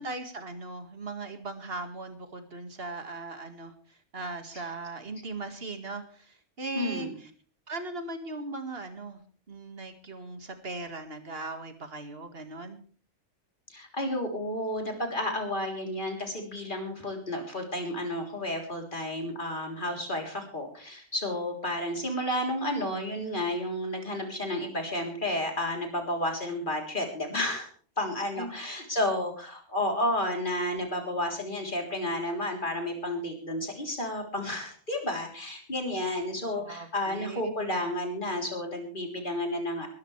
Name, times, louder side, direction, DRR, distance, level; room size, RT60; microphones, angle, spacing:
voice 1, 0.0-3.7 4.1-7.3 7.7-9.2 9.5-12.8 28.4-28.6 36.5-37.5, right 3 dB, 50° right, 7 dB, 2.2 m, -38 dB
voice 2, 6.8-7.2 13.7-27.7 28.0-39.9, left 1 dB, 40° left, 2 dB, 3.8 m, -31 dB
22.5 x 13.0 x 3.3 m, 0.42 s
omnidirectional pair, 1.3 m